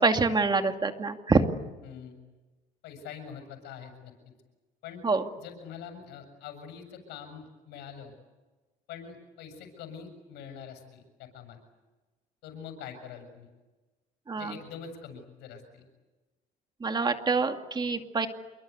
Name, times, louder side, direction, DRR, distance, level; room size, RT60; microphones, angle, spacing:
voice 1, 0.0-1.4 5.0-5.2 14.3-14.6 16.8-18.3, right 4 dB, 25° right, 6 dB, 2.4 m, -26 dB
voice 2, 1.8-2.2 2.8-4.1 4.8-5.0 5.4-8.1 8.9-11.6 12.4-13.5 14.4-15.9, left 7 dB, 90° left, 7 dB, 7.1 m, -44 dB
27.5 x 23.5 x 8.3 m, 1.2 s
cardioid pair, 110°, 17 cm